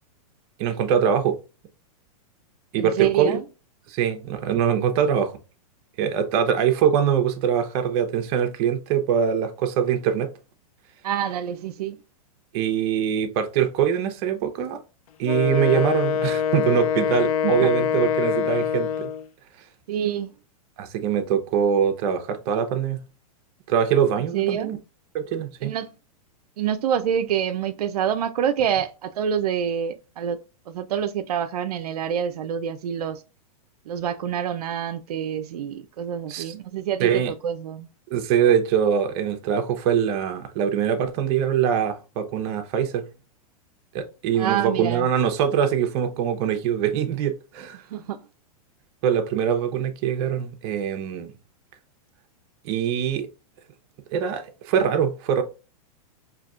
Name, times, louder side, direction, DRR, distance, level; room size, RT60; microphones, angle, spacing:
voice 1, 0.6-1.4 2.7-3.4 3.9-5.3 6.0-10.3 12.5-14.8 15.2-19.1 20.8-23.0 23.7-24.8 25.1-25.7 36.3-36.5 37.0-37.3 38.1-43.0 43.9-47.8 49.0-51.3 52.6-53.3 54.1-55.4, right 8 dB, 45° right, 0.7 m, -23 dB
voice 2, 2.8-3.4 11.0-12.0 17.4-17.7 19.9-20.3 24.3-24.7 25.6-25.9 26.6-30.4 30.7-33.2 33.9-37.9 44.4-45.1 47.9-48.2, right 9 dB, 85° right, 0.4 m, -27 dB
Wind instrument woodwind instrument, 15.2-19.3, left 8 dB, 70° left, 0.6 m, -24 dB
5.7 x 2.7 x 2.4 m
hypercardioid pair, 140°, 19 cm